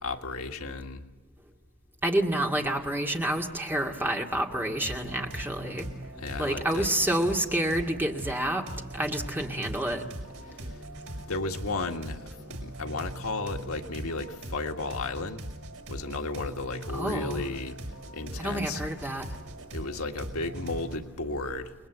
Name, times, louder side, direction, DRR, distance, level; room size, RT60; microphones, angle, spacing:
voice 1, 0.0-1.0 6.2-6.9 10.5-10.8 11.3-15.4 15.9-17.8 18.1-18.8 19.7-21.7, left 3 dB, 75° left, 4 dB, 1.8 m, -34 dB
voice 2, 2.0-5.9 6.4-8.6 8.9-10.0 16.9-17.4 18.4-19.3, right 1 dB, 10° right, 1 dB, 2.2 m, -28 dB
sound 1, 4.5-21.0, right 1 dB, 85° right, 7.0 m, -41 dB
29.5 x 22.0 x 8.1 m, 0.95 s
head